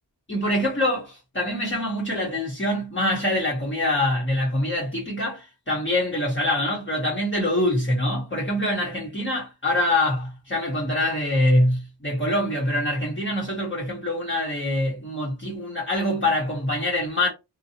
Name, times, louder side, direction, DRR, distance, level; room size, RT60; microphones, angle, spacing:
voice 1, 0.3-17.3, left 1 dB, 25° left, 1.1 m, -24 dB
2.7 x 2.4 x 2.8 m
wide cardioid pair, 90°, 43 cm